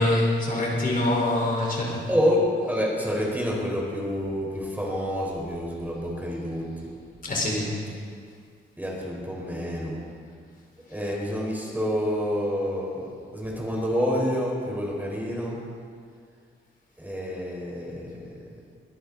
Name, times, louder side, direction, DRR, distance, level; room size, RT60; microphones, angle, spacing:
voice 1, 0.0-2.0 7.2-7.7, left 1 dB, 45° left, -2 dB, 4.3 m, -24 dB
voice 2, 2.1-6.9 8.8-10.0 10.9-15.6 17.0-18.2, equal, 10° right, -2 dB, 4.3 m, -28 dB
22.0 x 13.0 x 4.0 m, 2.1 s
cardioid pair, 90°, 20 cm